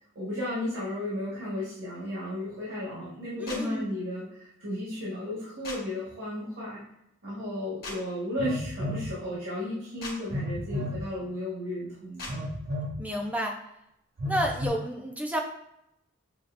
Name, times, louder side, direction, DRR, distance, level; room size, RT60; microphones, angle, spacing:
voice 1, 0.1-6.8 7.2-12.4, left 1 dB, 90° right, -8 dB, 1.5 m, -34 dB
voice 2, 3.4-3.9 10.7-10.9 13.0-13.6 14.3-15.4, equal, 10° right, 1 dB, 0.5 m, -31 dB
sound 1, 3.5-3.6 5.6-5.8 7.8-8.0 10.0-10.2 12.2-12.3, left 2 dB, 50° left, 1.3 m, -37 dB
Telephone, 8.4-9.1 10.3-11.0 12.3-13.0 14.2-14.7, left 1 dB, 50° right, 0.7 m, -32 dB
6.8 x 2.5 x 2.5 m, 0.80 s
head